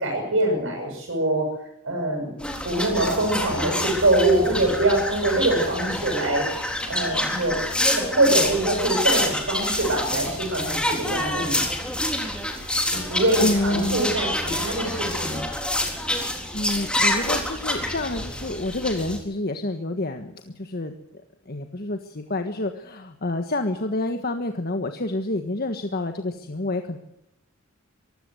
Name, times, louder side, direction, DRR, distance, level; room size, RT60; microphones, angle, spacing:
voice 1, 0.0-1.5 1.8-2.3 2.6-7.6 7.9-11.6 12.9-15.5, right 1 dB, 65° right, 1 dB, 8.0 m, -24 dB
sound 1, 2.4-19.2, left 1 dB, 5° left, 3.8 m, -27 dB
voice 2, 13.4-14.1 16.5-20.3 20.6-20.9 21.5-27.0, left 2 dB, 45° left, 6 dB, 1.5 m, -28 dB
24.0 x 16.0 x 8.0 m, 0.82 s
head